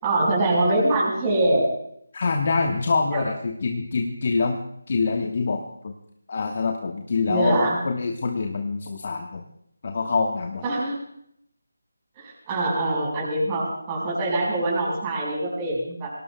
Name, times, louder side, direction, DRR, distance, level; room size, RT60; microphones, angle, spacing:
voice 1, 0.0-1.6 3.1-3.2 7.3-7.8 10.6-11.0 12.2-16.1, right 2 dB, 20° right, -6 dB, 4.7 m, -24 dB
voice 2, 2.1-4.6 4.9-5.9 6.3-9.4 9.8-10.6, left 4 dB, 45° left, 3 dB, 1.2 m, -25 dB
24.0 x 18.0 x 2.3 m, 0.72 s
figure-of-eight pair, 160°, 0 cm